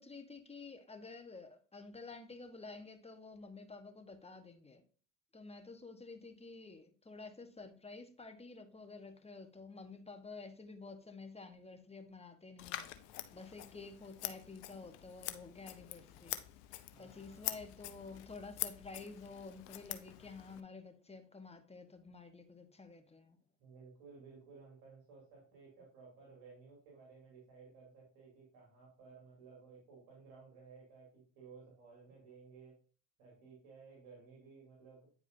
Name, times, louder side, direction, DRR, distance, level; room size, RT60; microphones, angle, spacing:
voice 1, 0.0-4.8 5.3-12.9 13.3-16.4 17.0-23.4, left 3 dB, 15° left, 1.2 m, -51 dB
Scissors, 12.6-20.6, left 15 dB, 70° left, 0.8 m, -45 dB
voice 2, 16.9-17.5 23.6-32.8 33.2-35.1, right 5 dB, 70° right, 2.8 m, -57 dB
9.4 x 4.8 x 2.7 m
hypercardioid pair, 65°, 39 cm